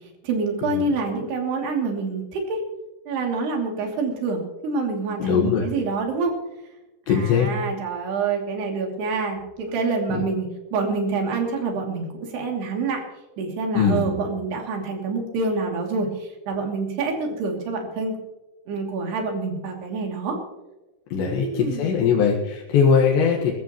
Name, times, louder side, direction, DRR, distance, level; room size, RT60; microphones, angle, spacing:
voice 1, 0.2-2.6 3.1-6.3 7.1-13.0 13.4-18.2 18.7-20.4 21.1-22.1, right 4 dB, 75° right, 1 dB, 4.8 m, -27 dB
voice 2, 5.2-5.7 7.1-7.5 10.1-10.2 13.8-14.2 21.1-23.5, left 6 dB, 90° left, -1 dB, 3.7 m, -20 dB
22.0 x 15.0 x 3.1 m, 1.0 s
omnidirectional pair, 4.8 m